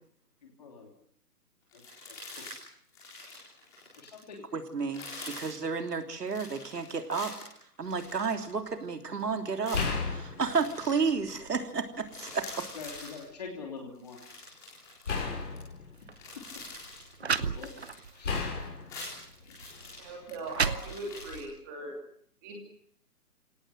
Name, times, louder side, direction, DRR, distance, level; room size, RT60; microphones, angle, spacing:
voice 1, 0.4-0.9 1.7-2.5 4.0-4.5 5.2-5.3 12.7-14.2 15.1-15.5 15.8-15.9 16.2-16.3 17.2-17.7 18.1-18.5 19.4-20.3, left 5 dB, 25° left, 1 dB, 3.2 m, -46 dB
sound 1, 1.7-2.6 2.9-4.3 4.8-5.6 6.3-8.9 9.6-11.1 11.5-11.7 11.9-13.2 13.9-15.6 16.0-17.1 17.4-18.5 18.8-21.4, left 2 dB, 5° left, 3.7 m, -46 dB
voice 2, 4.5-7.3 7.8-12.7, right 5 dB, 85° right, 6 dB, 3.5 m, -32 dB
sound 2, 7.9-8.2 9.7-11.6 12.0-13.0 15.1-17.0 18.2-20.1 21.2-21.4, left 4 dB, 50° left, 6.8 m, -36 dB
sound 3, 15.9-16.1 16.9-17.0 17.2-18.1 18.7-18.8 19.6-19.7 20.2-21.4, right 5 dB, 45° right, 0.9 m, -32 dB
voice 3, 20.0-21.9 22.4-22.6, right 2 dB, 10° right, 1 dB, 3.0 m, -40 dB
30.0 x 17.5 x 8.0 m, 0.66 s
hypercardioid pair, 180°, 46 cm